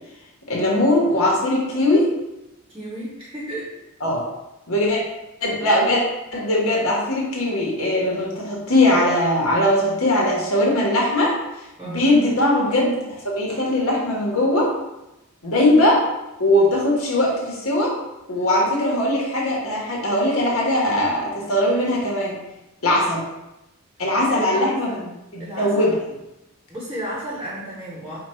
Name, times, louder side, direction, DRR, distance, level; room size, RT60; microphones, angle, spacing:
voice 1, 0.5-2.1 4.0-4.2 4.7-5.0 5.4-6.0 6.3-11.3 11.8-14.7 15.4-16.0 16.4-17.9 18.3-22.4 22.8-23.2 24.0-24.9 25.3-25.9, left 1 dB, 80° left, -3 dB, 1.4 m, -20 dB
voice 2, 2.7-3.7 11.8-12.0 24.3-25.1 25.4-25.9 26.7-28.2, right 1 dB, 15° right, -6 dB, 0.9 m, -33 dB
5.1 x 2.4 x 4.3 m, 0.95 s
head